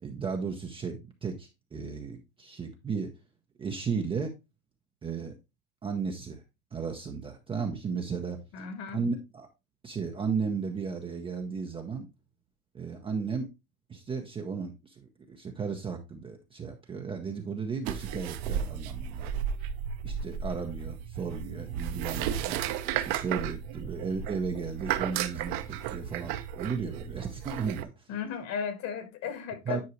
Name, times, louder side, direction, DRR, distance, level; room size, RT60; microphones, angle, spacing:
voice 1, 0.0-3.1 3.6-4.3 5.0-5.3 5.8-6.4 6.7-8.4 8.9-9.5 9.8-12.1 12.7-13.5 13.9-19.4 20.0-22.6 22.9-28.1 29.7-29.8, right 5 dB, 10° right, 0.6 m, -34 dB
voice 2, 8.5-9.0 28.1-29.8, left 7 dB, 35° left, 1.4 m, -35 dB
sound 1, 17.9-27.8, right 9 dB, 45° right, 0.9 m, -34 dB
9.7 x 4.6 x 3.0 m
supercardioid pair, 135°, 44 cm